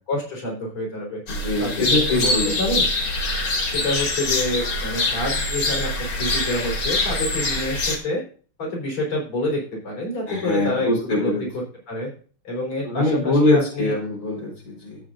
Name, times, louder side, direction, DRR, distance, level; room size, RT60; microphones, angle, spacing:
voice 1, 0.1-1.2 1.6-1.9 2.2-2.3 2.6-2.9 3.6-8.2 8.6-10.9 11.2-11.4 11.9-12.1 12.4-14.0, left 1 dB, 85° left, -1 dB, 4.9 m, -27 dB
sound 1, 1.3-8.0, left 2 dB, 65° left, 2.7 m, -24 dB
voice 2, 1.3-2.8 10.3-11.4 12.8-15.0, left 2 dB, 40° left, -2 dB, 4.6 m, -23 dB
13.5 x 8.1 x 2.5 m, 0.41 s
omnidirectional pair, 2.4 m